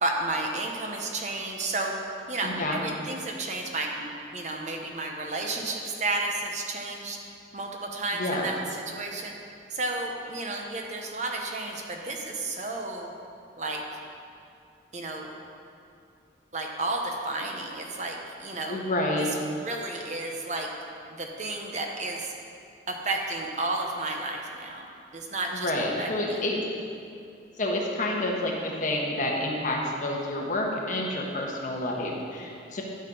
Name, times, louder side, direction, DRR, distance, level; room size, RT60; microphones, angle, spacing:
voice 1, 0.0-2.0 2.3-7.2 7.5-8.6 8.9-9.3 9.7-13.1 13.6-13.8 14.9-15.3 16.5-18.8 19.2-19.3 19.6-20.7 21.1-22.3 22.9-24.9 25.1-25.7 26.0-26.4, right 2 dB, 40° right, 1 dB, 0.9 m, -32 dB
voice 2, 2.4-2.8 8.1-8.5 18.7-19.3 25.5-26.6 27.6-32.8, left 1 dB, 45° left, -1 dB, 1.4 m, -29 dB
12.0 x 6.5 x 5.4 m, 2.5 s
head